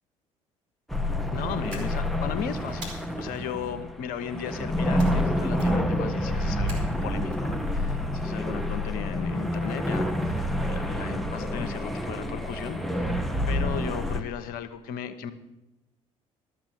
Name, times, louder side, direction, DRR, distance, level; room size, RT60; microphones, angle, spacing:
sound 1, 0.9-14.2, left 1 dB, ahead, 1.1 m, -28 dB
voice 1, 1.3-13.1 13.5-15.3, left 9 dB, 60° left, 10 dB, 1.0 m, -36 dB
sound 2, 1.7-2.3 2.8-3.4 5.0-5.3 5.6-6.0 6.7-7.4, right 1 dB, 70° right, 2.9 m, -43 dB
12.5 x 7.4 x 7.5 m, 0.95 s
hypercardioid pair, 55°, 17 cm